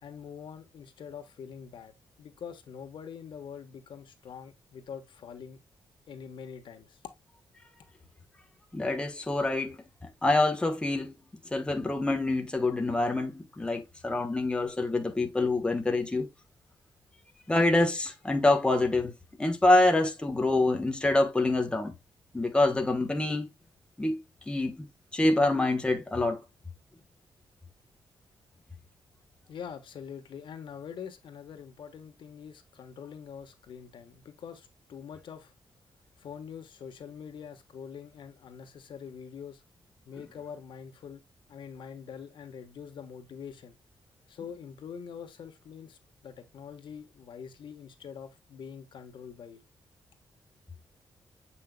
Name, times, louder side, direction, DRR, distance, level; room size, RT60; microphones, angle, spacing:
voice 1, 0.0-1.9 2.2-5.6 6.1-7.0 29.5-35.5 36.2-39.6 40.1-41.2 41.5-43.7 44.3-49.6, left 7 dB, 65° left, 1.2 m, -44 dB
voice 2, 8.7-9.8 10.2-11.1 11.5-16.3 17.5-19.1 19.4-21.9 22.3-23.5 24.0-24.9 25.1-26.4, left 2 dB, 10° left, 1.1 m, -26 dB
7.9 x 5.6 x 2.2 m
wide cardioid pair, 165°, 9 cm